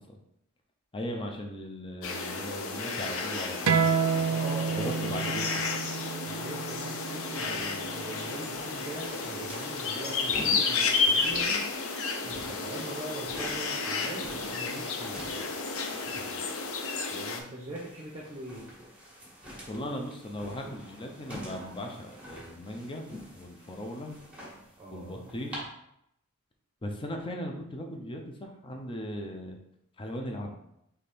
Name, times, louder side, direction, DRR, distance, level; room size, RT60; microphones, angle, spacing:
voice 1, 0.9-4.3 4.7-5.4 16.1-16.4 19.7-24.2 24.9-25.6 26.8-29.6 30.0-30.6, equal, 25° left, 2 dB, 0.5 m, -38 dB
sound 1, 2.0-17.4, left 4 dB, 65° left, 0.6 m, -32 dB
sound 2, 3.7-8.8, right 6 dB, 90° right, 0.5 m, -30 dB
voice 2, 4.3-5.6 6.3-11.7 12.2-15.3 17.1-18.6 24.8-25.2, right 1 dB, 25° right, -4 dB, 0.7 m, -41 dB
sound 3, 7.4-25.6, equal, 5° right, 1.4 m, -47 dB
4.2 x 3.3 x 3.4 m, 0.77 s
head